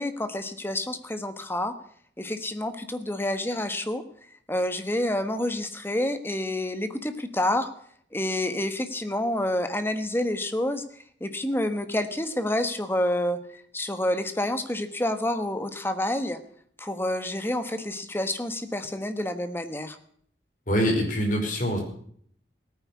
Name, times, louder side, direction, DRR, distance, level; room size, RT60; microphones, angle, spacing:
voice 1, 0.0-1.7 2.2-4.0 4.5-7.7 8.1-10.8 11.2-16.4 16.8-20.0, left 1 dB, 10° left, 9 dB, 1.3 m, -28 dB
voice 2, 20.7-21.8, equal, 45° left, 2 dB, 4.8 m, -24 dB
17.0 x 9.5 x 8.2 m, 0.62 s
head